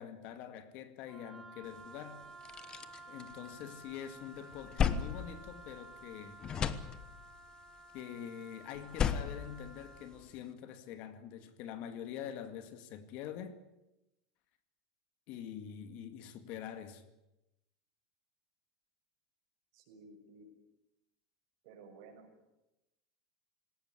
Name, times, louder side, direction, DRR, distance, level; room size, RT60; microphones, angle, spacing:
voice 1, 0.0-2.2 3.1-6.4 7.9-13.6 15.3-17.0, left 9 dB, 50° left, 2.1 m, -45 dB
Wind instrument woodwind instrument, 1.1-10.1, right 2 dB, ahead, 2.9 m, -53 dB
sound 1, 1.8-1.9 2.2-3.9 4.3-6.1 6.4-7.5 8.7-10.4, left 7 dB, 25° left, 1.1 m, -36 dB
voice 2, 19.7-20.5 21.6-22.3, right 3 dB, 60° right, 6.6 m, -55 dB
20.0 x 18.0 x 9.9 m
supercardioid pair, 160°, 3 cm